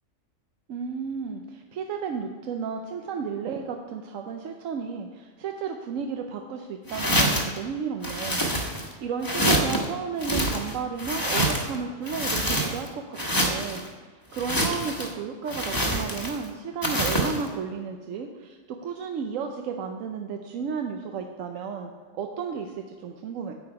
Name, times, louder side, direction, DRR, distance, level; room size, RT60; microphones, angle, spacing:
voice 1, 0.7-8.4 8.7-23.5, right 6 dB, 90° right, 4 dB, 1.1 m, -33 dB
sound 1, 6.9-7.6 8.0-8.9 9.2-9.8 10.2-11.8 12.1-12.9 13.2-13.8 14.3-15.1 15.5-16.4 16.8-17.4, right 1 dB, 15° left, 1.2 m, -26 dB
9.4 x 8.0 x 4.7 m, 1.5 s
omnidirectional pair, 1.3 m